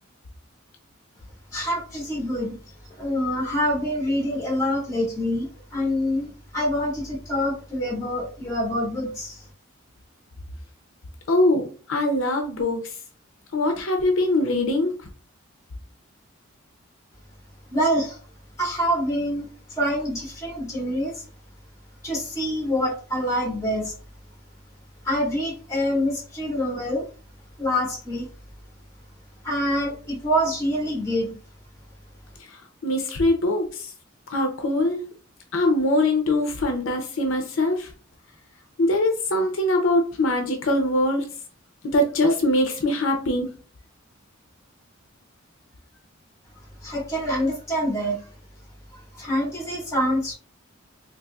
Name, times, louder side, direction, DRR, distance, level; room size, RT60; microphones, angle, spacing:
voice 1, 1.5-2.5 3.0-9.4 17.7-18.2 18.6-21.2 22.0-23.9 25.0-27.1 27.6-28.3 29.4-31.3 46.8-48.3 48.9-50.3, equal, 15° left, -4 dB, 1.6 m, -26 dB
voice 2, 11.3-12.8 13.5-14.9 32.8-33.9 34.3-35.0 35.5-37.9 38.8-41.3 41.8-43.5, left 1 dB, 70° left, 4 dB, 0.6 m, -22 dB
4.0 x 2.8 x 2.3 m, 0.39 s
head